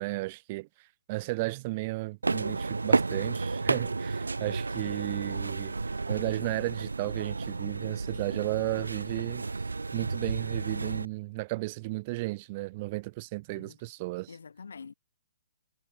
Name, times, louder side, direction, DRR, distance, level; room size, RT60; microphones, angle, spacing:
voice 1, 0.0-5.8 6.1-9.5 9.9-14.4, right 22 dB, 35° right, 3.1 m, -34 dB
sound 1, 2.2-11.0, right 3 dB, 85° right, 1.6 m, -32 dB
voice 2, 14.3-14.9, left 5 dB, 75° left, 3.1 m, -46 dB
figure-of-eight pair, 130°, 0 cm